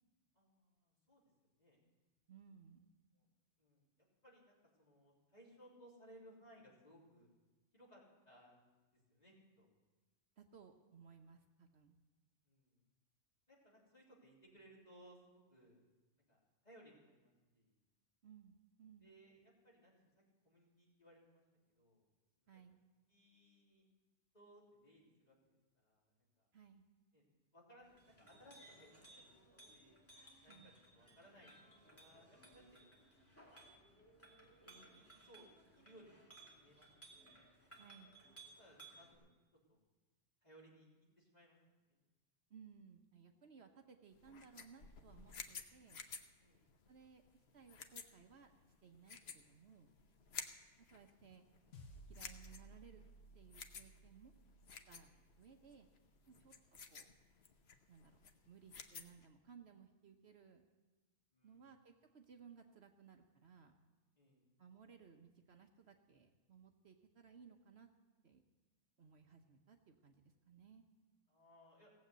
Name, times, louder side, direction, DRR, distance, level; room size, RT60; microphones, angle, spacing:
voice 1, 0.3-1.2 1.6-1.8 3.1-3.3 3.6-3.8 4.2-7.3 7.7-8.7 9.1-9.7 12.5-12.8 13.5-15.8 16.3-17.8 19.0-20.1 20.4-21.4 21.8-22.1 23.1-23.9 24.3-26.5 27.1-27.2 27.5-28.9 29.1-29.3 29.7-30.0 30.4-32.9 34.4-35.5 35.7-37.3 38.6-39.3 39.7-39.8 40.4-40.9 41.2-41.6 41.9-42.0 46.4-46.7 50.2-50.8 54.9-55.1 56.2-56.4 61.3-61.7 64.2-64.4 69.0-69.1 71.3-71.9, equal, 35° left, -5 dB, 3.5 m, -64 dB
voice 2, 2.3-2.9 10.4-12.0 18.2-19.1 22.5-22.8 26.5-26.8 30.5-30.7 37.8-38.2 42.5-46.0 46.9-47.2 47.5-48.5 48.8-49.9 50.8-51.8 52.1-53.0 53.3-54.3 54.9-55.1 55.4-55.9 56.3-56.5 56.9-57.1 57.9-58.2 58.5-60.6 61.4-63.7 64.6-67.9 68.2-68.4 69.0-70.8, right 6 dB, 60° right, 5 dB, 1.1 m, -61 dB
Chink clink, 27.8-39.1, right 2 dB, 10° left, 2.5 m, -62 dB
sound 1, 44.1-59.3, left 5 dB, 60° left, 1.1 m, -54 dB
sound 2, 51.7-56.3, right 1 dB, 75° left, 1.5 m, -60 dB
17.0 x 7.6 x 8.0 m, 1.2 s
omnidirectional pair, 1.3 m